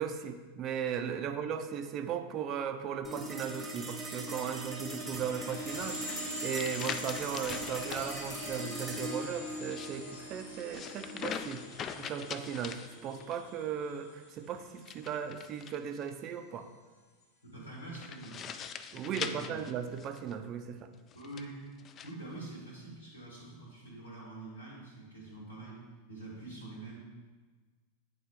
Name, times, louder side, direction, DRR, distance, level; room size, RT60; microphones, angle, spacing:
voice 1, 0.0-6.0 6.4-16.7 18.9-20.8, right 8 dB, 35° right, 7 dB, 0.5 m, -37 dB
sound 1, 3.0-13.7, right 1 dB, 10° right, 1.0 m, -42 dB
sound 2, 5.1-15.2, left 1 dB, 65° left, 1.0 m, -45 dB
sound 3, 6.1-8.1 9.5-13.4 14.8-16.1 17.9-20.4 21.1-22.1, left 7 dB, 30° left, 0.3 m, -42 dB
voice 2, 17.4-18.4 19.0-19.6 21.1-21.6 22.0-25.8 26.1-27.0, right 2 dB, 85° left, -4 dB, 1.6 m, -45 dB
8.5 x 3.9 x 3.4 m, 1.4 s
figure-of-eight pair, 90°, 0 cm